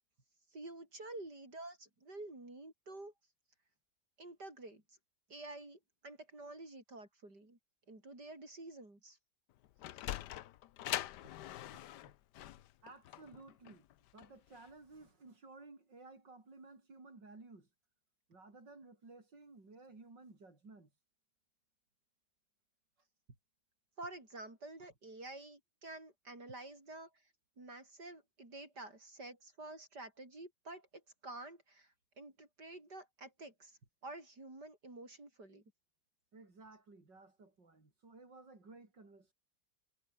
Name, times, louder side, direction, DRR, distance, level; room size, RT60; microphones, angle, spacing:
voice 1, 0.5-3.1 4.2-4.8 5.3-7.6 7.9-9.2 10.0-10.1 24.0-27.1 27.6-35.6, right 2 dB, 70° right, 7.8 m, -50 dB
Sliding door, 9.5-14.7, left 13 dB, 75° left, 1.3 m, -43 dB
voice 2, 12.8-13.8 14.1-17.7 18.3-20.9 24.8-24.9 36.3-39.3, right 3 dB, 85° right, 5.8 m, -56 dB
omnidirectional pair, 1.9 m